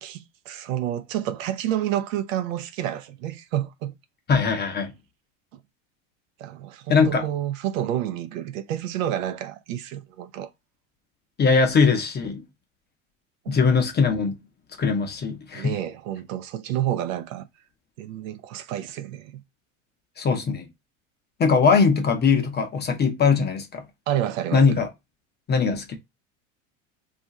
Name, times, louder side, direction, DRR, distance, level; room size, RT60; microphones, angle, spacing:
voice 1, 0.0-3.9 6.4-10.5 13.5-13.6 15.5-17.5 18.0-19.4 24.1-24.8, right 12 dB, 85° right, 0.6 m, -29 dB
voice 2, 4.3-5.0 6.9-7.2 11.4-12.4 13.5-14.4 14.8-15.8 20.2-20.7 21.4-23.9 24.5-24.9 25.5-26.0, left 5 dB, 25° left, 0.6 m, -21 dB
2.4 x 2.4 x 4.0 m
supercardioid pair, 100°, 38 cm